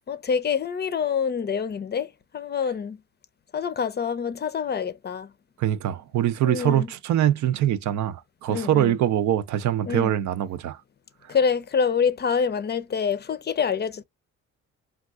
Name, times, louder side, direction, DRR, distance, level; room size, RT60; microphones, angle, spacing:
voice 1, 0.1-3.0 3.5-5.3 6.4-6.9 8.5-9.0 9.9-10.2 11.3-14.0, left 6 dB, 35° left, 0.5 m, -26 dB
voice 2, 5.6-10.8, right 11 dB, 70° right, 0.5 m, -23 dB
3.4 x 2.3 x 2.4 m
cardioid pair, 90°, 30 cm